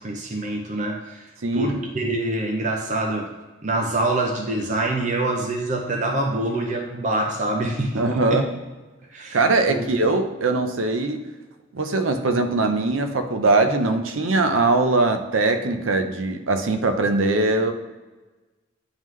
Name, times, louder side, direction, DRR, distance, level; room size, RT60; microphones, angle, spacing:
voice 1, 0.0-8.5 9.1-9.9, right 2 dB, 35° right, 1 dB, 0.6 m, -26 dB
voice 2, 1.4-1.8 7.9-8.5 9.3-11.2 11.7-17.7, right 3 dB, 90° right, 7 dB, 0.6 m, -21 dB
9.2 x 3.6 x 3.2 m, 1.2 s
head